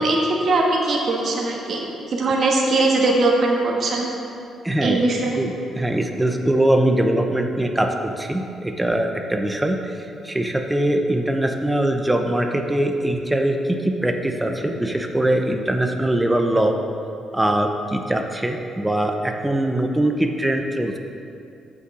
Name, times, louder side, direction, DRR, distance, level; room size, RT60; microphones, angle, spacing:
voice 1, 0.0-4.1 4.8-5.4, right 2 dB, 55° right, -1 dB, 1.6 m, -20 dB
voice 2, 4.6-5.1 5.4-10.0 10.2-16.8 17.3-21.0, right 1 dB, 10° right, 4 dB, 0.8 m, -22 dB
7.3 x 6.8 x 6.2 m, 2.6 s
cardioid pair, 90°, 0 cm